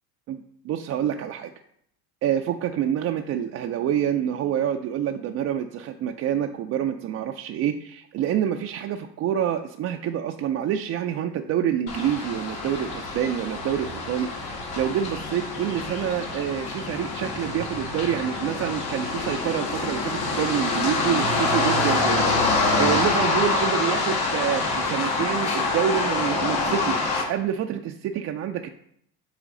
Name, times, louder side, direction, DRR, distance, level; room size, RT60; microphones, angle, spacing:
voice 1, 0.3-1.5 2.2-28.7, right 9 dB, 35° right, 4 dB, 0.4 m, -27 dB
sound 1, 11.9-27.2, left 3 dB, 75° left, 1.9 m, -26 dB
8.2 x 3.1 x 3.8 m, 0.70 s
hypercardioid pair, 80°, 47 cm